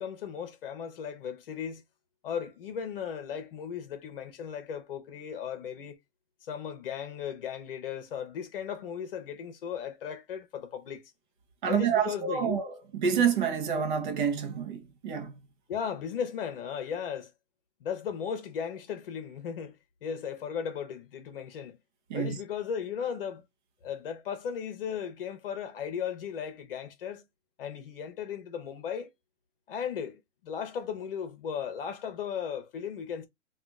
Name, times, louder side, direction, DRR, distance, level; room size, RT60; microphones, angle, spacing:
voice 1, 0.0-1.8 2.2-6.0 6.4-11.0 11.7-12.6 15.7-17.3 17.8-21.8 22.1-23.4 23.8-27.2 27.6-29.1 29.7-33.3, left 7 dB, 50° left, 1.0 m, -36 dB
voice 2, 11.6-15.3 22.1-22.4, right 7 dB, 45° right, 0.7 m, -28 dB
2.8 x 2.4 x 3.5 m
hypercardioid pair, 175°, 35 cm